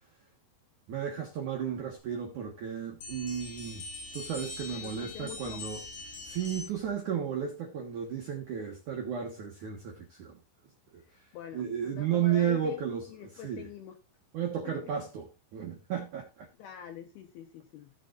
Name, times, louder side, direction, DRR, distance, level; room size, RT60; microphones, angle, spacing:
voice 1, 0.9-3.8 4.1-5.8 6.3-10.4 10.9-11.0 11.5-13.1 13.4-13.7 14.3-16.5, right 8 dB, 65° right, 1.9 m, -33 dB
sound 1, 3.0-6.9, left 3 dB, 40° left, 8.4 m, -43 dB
voice 2, 4.7-5.6 11.0-14.0 14.6-14.8 16.6-17.9, left 9 dB, 75° left, 2.3 m, -45 dB
16.5 x 6.6 x 2.5 m
omnidirectional pair, 5.6 m